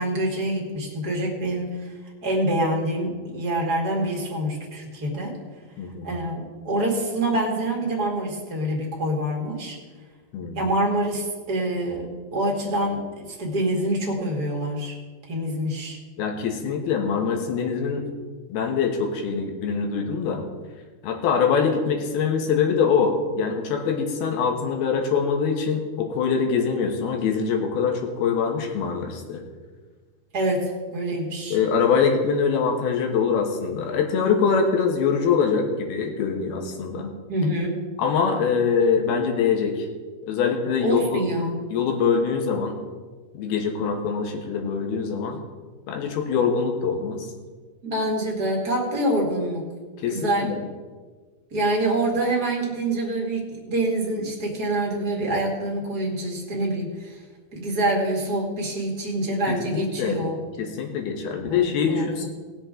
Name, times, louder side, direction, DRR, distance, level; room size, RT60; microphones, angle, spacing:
voice 1, 0.0-1.9 2.2-5.4 6.0-9.8 10.5-14.9 15.3-16.0 30.3-31.6 37.3-37.8 40.8-41.5 47.8-49.7 50.1-50.5 51.5-57.2 57.5-60.4 61.4-62.3, right 1 dB, 35° right, -1 dB, 1.7 m, -26 dB
voice 2, 5.8-6.1 10.3-10.6 16.2-18.0 18.5-20.4 21.0-29.4 31.5-37.1 38.0-39.9 40.3-41.2 41.7-42.8 43.3-45.4 45.9-47.3 50.0-50.6 59.5-60.2 60.6-62.3, left 6 dB, 75° left, 2 dB, 3.2 m, -24 dB
18.5 x 7.5 x 3.8 m, 1.4 s
omnidirectional pair, 4.6 m